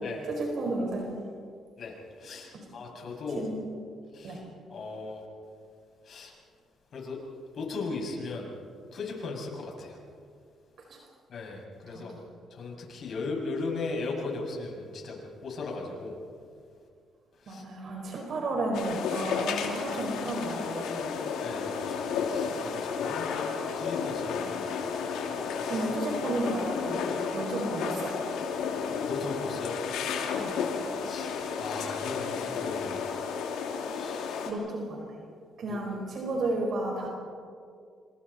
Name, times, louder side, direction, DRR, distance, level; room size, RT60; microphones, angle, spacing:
voice 1, 0.2-1.1 2.5-2.7 3.3-3.6 4.2-4.4 10.9-11.1 11.9-12.0 17.5-21.3 25.7-27.1 27.3-28.2 30.4-30.5 34.4-35.1 35.6-37.1, right 2 dB, 60° right, 0 dB, 5.0 m, -33 dB
voice 2, 1.8-3.5 4.1-4.4 4.7-5.2 6.1-6.3 6.9-7.2 7.6-8.5 8.9-10.0 11.3-12.1 12.5-16.2 17.4-17.6 21.4-23.3 23.6-24.7 25.6-25.8 29.0-29.8 31.0-33.0 33.9-34.4, left 3 dB, 55° left, -1 dB, 6.9 m, -37 dB
sound 1, 18.7-34.5, left 6 dB, 90° left, 2.7 m, -32 dB
27.0 x 27.0 x 4.3 m, 2.2 s
cardioid pair, 90°, 0 cm